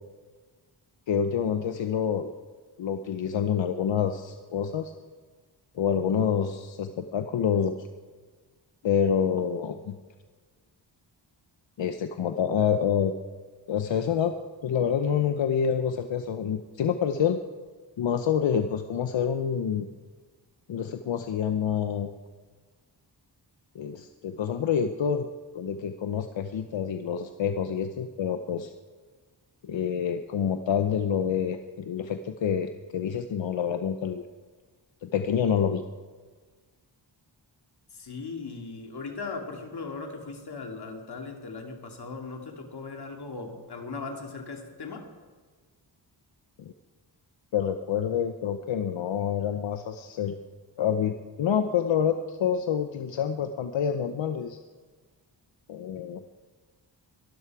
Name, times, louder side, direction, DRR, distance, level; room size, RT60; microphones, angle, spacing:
voice 1, 1.1-2.3 2.8-4.9 5.7-7.9 8.8-9.9 11.8-13.1 13.7-14.4 14.6-17.4 18.0-19.9 20.7-22.1 23.7-25.3 25.5-28.7 29.6-34.2 35.0-35.8 46.6-46.7 47.5-50.4 50.8-54.6 55.7-56.2, left 8 dB, 90° left, 8 dB, 0.8 m, -27 dB
voice 2, 37.9-45.1, left 4 dB, 60° left, 2 dB, 2.5 m, -38 dB
22.5 x 12.5 x 4.8 m, 1.5 s
wide cardioid pair, 170°, 44 cm